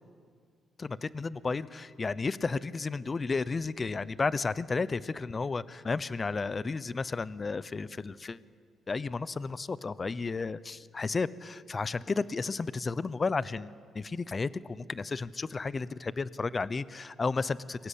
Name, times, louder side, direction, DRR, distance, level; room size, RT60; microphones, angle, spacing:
voice 1, 0.8-8.4 8.9-17.9, left 4 dB, 30° left, 17 dB, 0.8 m, -33 dB
29.5 x 23.0 x 8.5 m, 2.1 s
cardioid pair, 90°, 0 cm